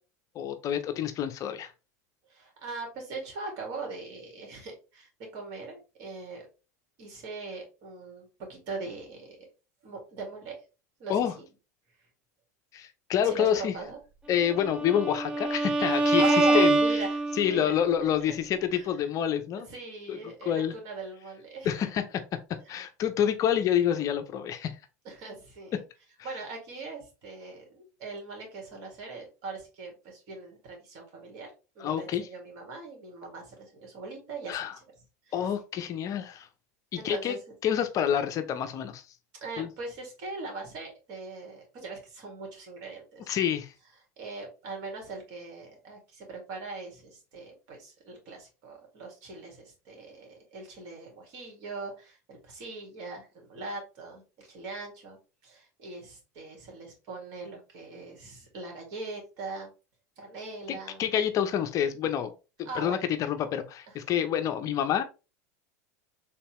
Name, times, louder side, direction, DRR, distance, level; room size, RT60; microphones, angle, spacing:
voice 1, 0.3-1.7 11.1-11.3 12.7-13.8 14.3-16.8 17.3-19.7 20.1-20.7 21.6-22.2 22.7-24.7 25.7-25.8 31.8-32.3 34.5-34.8 35.3-36.5 36.9-39.0 39.6-39.7 43.3-43.7 60.7-62.3 62.6-65.0, left 9 dB, 40° left, 9 dB, 0.5 m, -28 dB
voice 2, 2.3-6.5 7.0-9.4 9.8-10.6 11.0-11.4 13.2-14.0 16.2-17.7 18.7-18.9 19.7-21.7 22.7-22.8 25.1-25.7 26.2-34.7 35.3-35.4 37.0-37.4 39.4-43.3 44.2-59.7 60.2-61.0 62.7-63.1, right 3 dB, 55° right, 1 dB, 2.0 m, -40 dB
Bowed string instrument, 14.6-17.7, right 2 dB, 10° right, 0.6 m, -25 dB
3.6 x 2.8 x 3.0 m, 0.31 s
hypercardioid pair, 105°, 9 cm